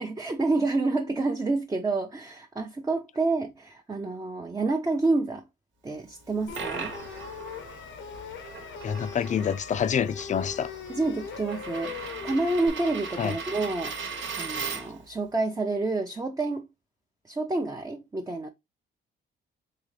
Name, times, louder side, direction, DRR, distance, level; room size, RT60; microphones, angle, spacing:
voice 1, 0.0-5.4 5.8-6.9 10.9-13.9 14.4-16.7 17.3-18.5, right 3 dB, 15° right, 0.5 m, -28 dB
Coin (dropping), 6.2-15.1, right 5 dB, 70° right, 1.1 m, -38 dB
sound 1, 6.5-12.7, left 8 dB, 90° left, 0.8 m, -41 dB
voice 2, 8.8-10.7 13.2-13.3, left 8 dB, 40° left, 0.4 m, -27 dB
3.8 x 3.2 x 3.2 m
cardioid pair, 90°, 20 cm